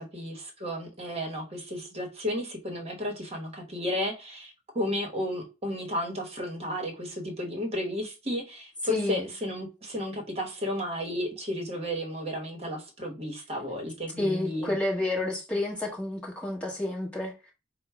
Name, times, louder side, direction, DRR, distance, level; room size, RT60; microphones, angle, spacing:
voice 1, 0.0-14.8, equal, 35° right, 1.0 m, -33 dB
voice 2, 8.9-9.3 14.2-17.5, left 1 dB, 5° left, 1.2 m, -30 dB
4.4 x 2.1 x 4.5 m
head